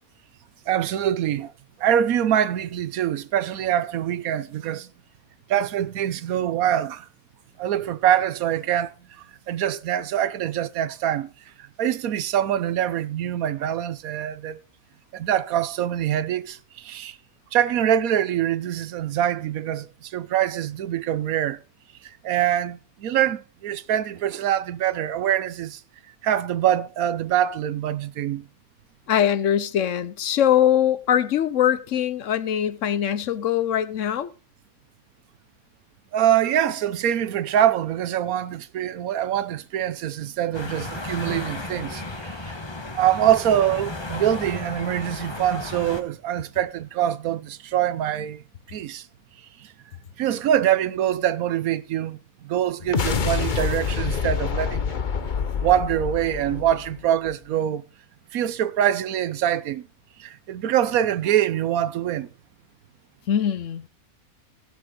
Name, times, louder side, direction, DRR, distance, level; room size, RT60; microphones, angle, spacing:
voice 1, 0.7-1.5 1.8-4.9 5.5-7.1 7.6-8.9 9.5-11.3 11.6-14.6 15.1-17.2 17.5-21.6 22.2-25.8 26.2-28.5 36.1-42.4 42.9-48.4 48.7-49.1 49.6-49.7 50.2-55.0 55.6-57.8 58.3-59.9 60.2-62.3, right 11 dB, 80° right, 1.2 m, -24 dB
voice 2, 29.1-34.3 63.3-63.9, left 10 dB, 65° left, 1.0 m, -22 dB
sound 1, 40.5-46.0, left 2 dB, 20° left, 1.1 m, -34 dB
sound 2, 52.8-57.3, left 6 dB, 40° left, 0.8 m, -27 dB
16.5 x 7.2 x 3.8 m
omnidirectional pair, 1.5 m